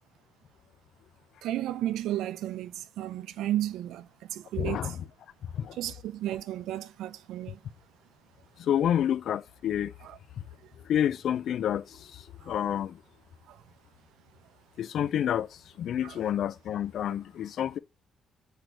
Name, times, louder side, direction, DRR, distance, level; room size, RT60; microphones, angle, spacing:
voice 1, 1.4-4.0 4.3-4.9 5.8-7.6 16.0-16.1, right 13 dB, 85° right, 0.5 m, -33 dB
voice 2, 4.6-5.1 5.5-5.8 8.6-9.9 10.9-13.0 14.8-15.5 15.8-17.8, left 10 dB, 70° left, 0.4 m, -29 dB
8.0 x 4.5 x 6.0 m
cardioid pair, 90°, 0 cm